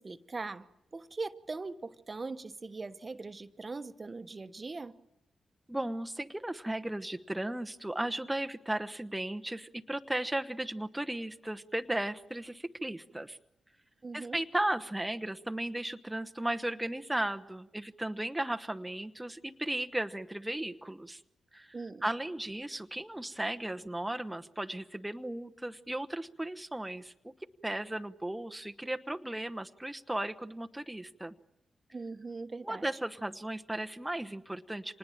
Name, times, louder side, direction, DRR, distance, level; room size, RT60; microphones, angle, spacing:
voice 1, 0.0-4.9 14.0-14.4 21.7-22.0 31.9-32.8, right 3 dB, 40° right, 11 dB, 1.1 m, -41 dB
voice 2, 5.7-13.4 14.1-21.2 21.5-21.8 22.0-27.3 27.6-31.3 32.6-35.0, right 1 dB, 10° right, 7 dB, 1.0 m, -35 dB
25.5 x 20.0 x 8.9 m, 0.87 s
supercardioid pair, 45°, 0 cm